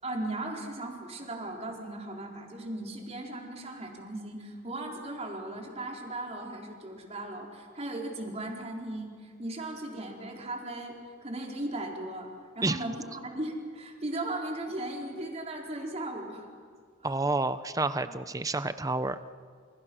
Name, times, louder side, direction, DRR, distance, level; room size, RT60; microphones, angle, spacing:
voice 1, 0.0-11.0 11.2-16.5 17.0-17.1, right 1 dB, 35° right, 0 dB, 4.4 m, -37 dB
voice 2, 17.0-19.2, right 2 dB, 15° right, 12 dB, 0.9 m, -29 dB
30.0 x 28.5 x 6.3 m, 2.1 s
head